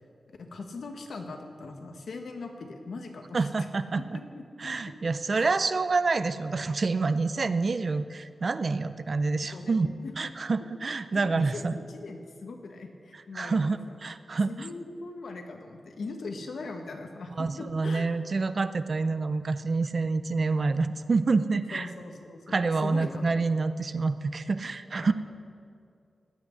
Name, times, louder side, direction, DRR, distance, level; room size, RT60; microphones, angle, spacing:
voice 1, 0.3-3.7 4.0-4.4 5.3-5.5 9.4-10.1 10.9-14.0 14.5-18.1 21.7-23.4 25.0-25.1, left 3 dB, 70° left, 4 dB, 1.5 m, -40 dB
voice 2, 3.3-4.0 4.6-9.9 10.2-11.7 13.3-14.7 17.4-21.9 22.5-25.1, right 3 dB, 40° right, 12 dB, 0.5 m, -27 dB
16.5 x 6.2 x 10.0 m, 2.4 s
wide cardioid pair, 150°, 0 cm